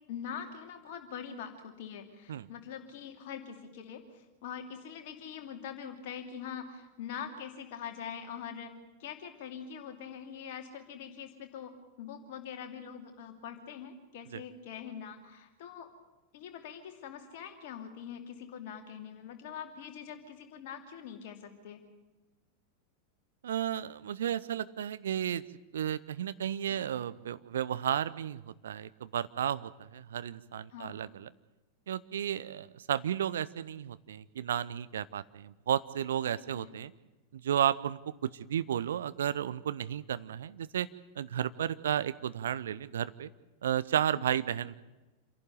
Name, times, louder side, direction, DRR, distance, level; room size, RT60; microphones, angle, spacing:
voice 1, 0.1-11.7 12.0-15.9 16.3-21.8 30.7-31.0 36.3-36.7 44.1-44.2, left 8 dB, 50° left, 5 dB, 2.7 m, -43 dB
voice 2, 23.4-25.4 25.7-31.3 31.9-36.9 37.3-40.9 41.2-43.3 43.6-44.8, right 10 dB, 65° right, 16 dB, 0.7 m, -33 dB
27.5 x 11.5 x 9.4 m, 1.1 s
figure-of-eight pair, 90°, 0 cm